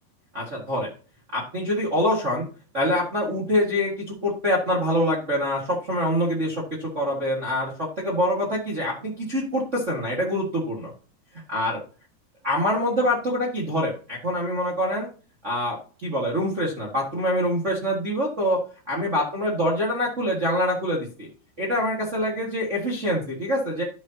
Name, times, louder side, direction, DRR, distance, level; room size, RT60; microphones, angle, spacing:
voice 1, 0.3-0.9 1.3-2.4 2.7-10.9 11.5-11.8 12.4-15.1 15.4-18.6 18.9-21.3 21.6-23.8, equal, 65° right, -3 dB, 0.7 m, -25 dB
12.5 x 6.4 x 2.9 m, 0.38 s
omnidirectional pair, 4.8 m